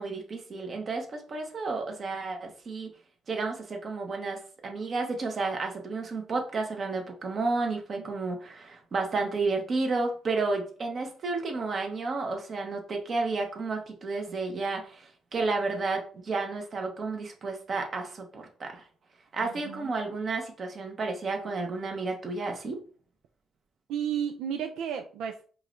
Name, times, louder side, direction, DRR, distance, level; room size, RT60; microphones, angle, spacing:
voice 1, 0.0-2.9 3.3-18.8 19.3-22.8, right 3 dB, 45° right, 2 dB, 1.1 m, -31 dB
voice 2, 19.4-19.9 23.9-25.4, right 8 dB, 90° right, 5 dB, 0.3 m, -33 dB
4.6 x 2.6 x 3.2 m, 0.41 s
cardioid pair, 90°, 0 cm